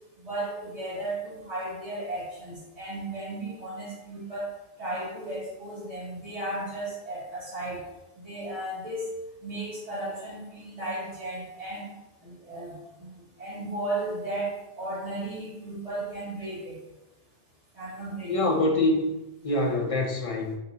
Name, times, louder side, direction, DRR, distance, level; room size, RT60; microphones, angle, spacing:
voice 1, 0.2-4.5 4.8-7.8 8.2-9.1 9.4-11.9 12.2-13.1 13.4-16.8 17.7-18.3, right 1 dB, 60° right, -7 dB, 1.6 m, -35 dB
voice 2, 18.3-20.5, left 2 dB, 45° left, 0 dB, 0.4 m, -25 dB
4.1 x 2.7 x 4.0 m, 0.99 s
omnidirectional pair, 1.3 m